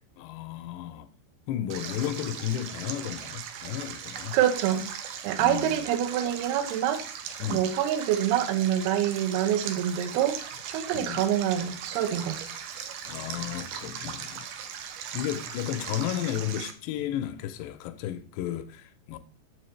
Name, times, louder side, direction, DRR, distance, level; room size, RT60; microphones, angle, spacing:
voice 1, 0.2-1.1 1.5-4.4 5.4-5.8 7.4-7.7 10.9-11.2 13.1-14.5 15.1-19.2, left 11 dB, 80° left, 2.7 m, -33 dB
Stream, 1.7-16.7, right 8 dB, 90° right, 1.8 m, -39 dB
voice 2, 4.3-4.9 5.2-7.0 7.5-10.4 10.7-12.5, right 10 dB, 75° right, 2.7 m, -26 dB
7.4 x 6.9 x 3.2 m
omnidirectional pair, 4.9 m